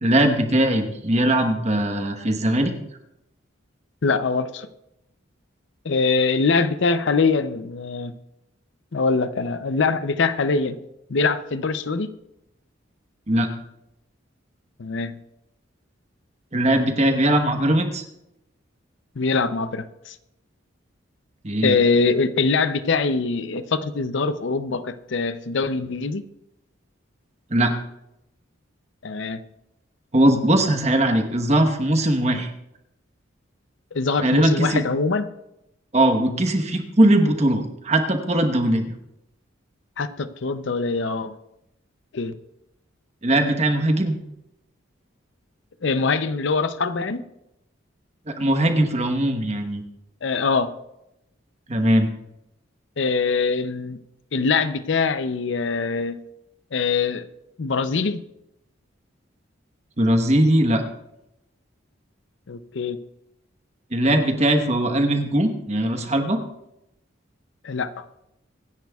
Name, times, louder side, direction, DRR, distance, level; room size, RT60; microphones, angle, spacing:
voice 1, 0.0-2.7 13.3-13.5 16.5-18.0 21.4-21.8 27.5-27.7 30.1-32.5 34.2-34.8 35.9-38.9 43.2-44.2 48.3-49.8 51.7-52.1 60.0-60.8 63.9-66.4, right 1 dB, 35° right, 5 dB, 1.1 m, -20 dB
voice 2, 4.0-4.7 5.8-8.1 8.9-10.8 11.1-12.1 14.8-15.1 19.2-20.2 21.6-26.2 29.0-29.4 33.9-35.3 40.0-41.4 42.1-42.3 45.8-47.2 50.2-50.7 53.0-54.0 54.3-56.2 56.7-57.3 57.6-58.2 62.5-63.0 67.6-68.0, left 4 dB, 65° left, 12 dB, 0.6 m, -23 dB
24.0 x 10.5 x 2.4 m, 0.86 s
head